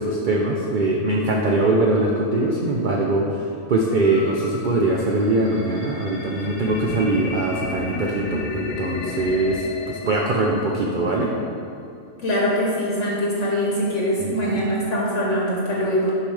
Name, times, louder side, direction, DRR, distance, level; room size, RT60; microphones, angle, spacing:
voice 1, 0.0-3.3 3.7-11.3, right 2 dB, 90° right, -1 dB, 0.4 m, -22 dB
sound 1, 4.0-11.1, left 3 dB, 80° left, 1.1 m, -33 dB
voice 2, 12.2-16.1, equal, 60° left, -5 dB, 1.2 m, -23 dB
6.8 x 5.6 x 3.2 m, 2.5 s
omnidirectional pair, 1.5 m